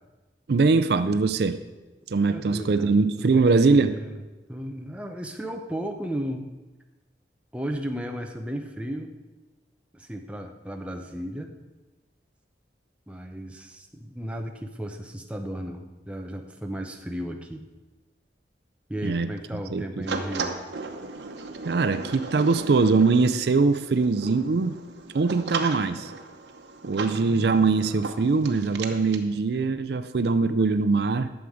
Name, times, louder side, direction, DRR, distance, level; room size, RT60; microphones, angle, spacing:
voice 1, 0.5-1.6 2.1-3.9 19.0-19.3 19.7-20.1 21.6-24.8 25.1-26.1 26.8-31.3, right 4 dB, 65° right, 11 dB, 0.4 m, -22 dB
voice 2, 2.3-4.2 4.5-6.5 7.5-9.1 9.9-11.5 13.1-17.7 18.9-20.6, equal, 5° right, 3 dB, 0.7 m, -34 dB
sound 1, 20.1-29.2, right 4 dB, 85° right, 0.9 m, -36 dB
11.5 x 7.2 x 4.9 m, 1.2 s
head